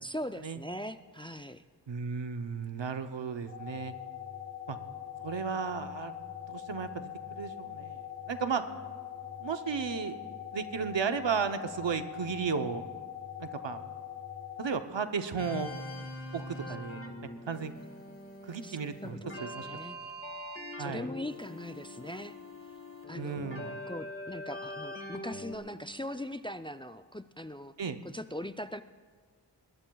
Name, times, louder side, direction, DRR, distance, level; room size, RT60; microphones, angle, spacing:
voice 1, 0.0-1.6 16.7-16.8 18.6-20.0 20.8-22.4 23.1-27.7 28.1-28.8, left 1 dB, 15° left, 10 dB, 0.3 m, -41 dB
voice 2, 1.9-3.9 4.7-4.8 5.2-6.1 6.5-7.1 7.4-8.6 9.4-10.2 10.5-12.8 13.4-13.8 14.6-15.7 16.3-17.0 17.5-17.7 18.4-19.7 20.8-21.1 23.2-23.7 27.8-28.0, right 6 dB, 85° right, 9 dB, 0.8 m, -34 dB
sound 1, 3.5-14.7, left 9 dB, 65° left, 2.6 m, -42 dB
sound 2, 15.4-25.6, left 1 dB, 30° left, 1.7 m, -43 dB
21.0 x 19.0 x 2.3 m, 1.5 s
wide cardioid pair, 50°, 43 cm